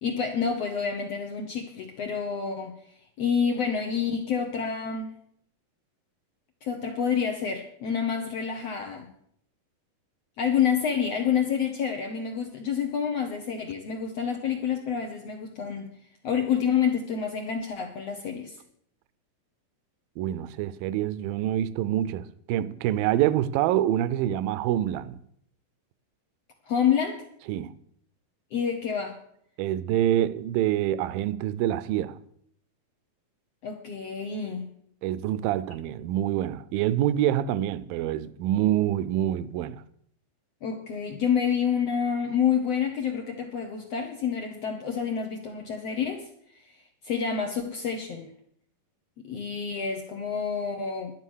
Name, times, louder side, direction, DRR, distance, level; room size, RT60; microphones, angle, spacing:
voice 1, 0.0-2.7 3.2-5.1 6.6-9.1 10.4-15.9 16.2-18.6 26.7-27.2 28.5-29.2 33.6-34.7 40.6-46.2 46.5-46.7 47.0-48.3 49.2-51.1, left 7 dB, 65° left, 1.7 m, -28 dB
voice 2, 20.2-25.2 27.5-27.7 29.6-32.2 35.0-39.8, right 12 dB, 80° right, 2.3 m, -26 dB
11.5 x 10.5 x 6.3 m
omnidirectional pair, 4.2 m